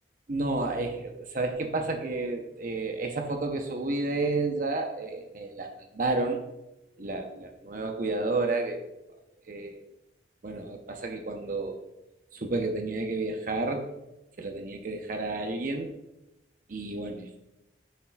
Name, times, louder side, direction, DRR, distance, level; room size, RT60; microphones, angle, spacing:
voice 1, 0.3-5.7 5.9-6.4 7.0-8.9 9.5-9.8 10.4-11.8 12.3-13.9 14.4-15.9 16.7-17.4, right 2 dB, 50° right, 4 dB, 0.7 m, -31 dB
9.0 x 6.9 x 2.3 m, 0.92 s
head